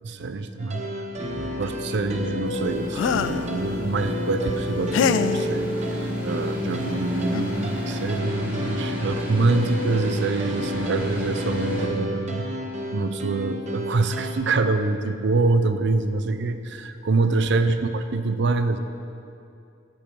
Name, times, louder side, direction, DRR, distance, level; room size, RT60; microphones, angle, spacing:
voice 1, 0.0-0.9 1.3-12.5 12.9-18.8, right 3 dB, 65° right, 9 dB, 0.5 m, -25 dB
sound 1, 0.6-14.3, equal, 35° right, 0.9 m, -32 dB
sound 2, 1.1-11.9, equal, 10° right, 2.0 m, -31 dB
sound 3, 2.9-3.5 4.9-5.5 6.9-7.0 7.3-7.6, left 7 dB, 75° left, 0.3 m, -24 dB
14.5 x 5.3 x 4.5 m, 2.6 s
head